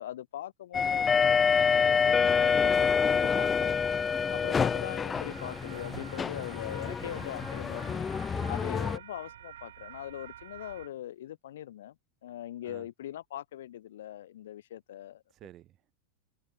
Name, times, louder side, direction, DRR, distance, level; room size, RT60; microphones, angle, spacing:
voice 1, 0.0-3.8 4.3-8.1 8.5-11.9 12.2-15.2, left 12 dB, 70° left, 1.2 m, -41 dB
sound 1, 0.7-9.0, left 6 dB, 20° left, 0.3 m, -27 dB
voice 2, 4.0-4.8 6.8-7.1 8.3-9.0 12.6-12.9 15.3-15.9, right 14 dB, 40° right, 3.4 m, -51 dB
sound 2, 5.1-10.9, right 11 dB, 70° right, 2.1 m, -48 dB
hypercardioid pair, 95°, 0 cm